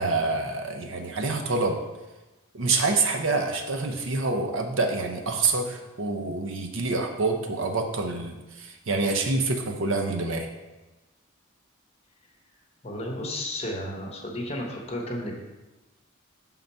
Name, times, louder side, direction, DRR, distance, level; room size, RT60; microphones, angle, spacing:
voice 1, 0.0-1.8 2.5-10.5, right 3 dB, 65° right, 3 dB, 0.7 m, -27 dB
voice 2, 12.8-15.4, left 1 dB, 30° left, -1 dB, 1.0 m, -33 dB
5.8 x 3.8 x 5.4 m, 1.1 s
head